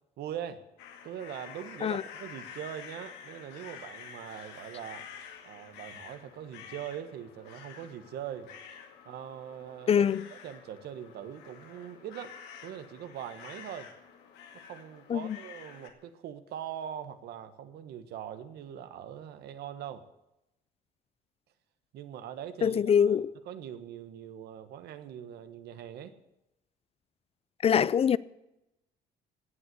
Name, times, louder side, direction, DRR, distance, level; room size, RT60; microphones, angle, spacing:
voice 1, 0.2-0.6 1.0-5.1 5.4-8.5 9.0-10.1 10.4-12.4 12.6-13.9 14.5-20.1 21.9-26.2, right 10 dB, 75° right, 1.4 m, -42 dB
sound 1, 0.8-15.9, left 7 dB, 90° left, 2.3 m, -49 dB
voice 2, 9.9-10.3 15.1-15.4 22.6-23.3 27.6-28.2, left 8 dB, 35° left, 0.4 m, -24 dB
17.5 x 8.3 x 8.4 m
cardioid pair, 110°, 17 cm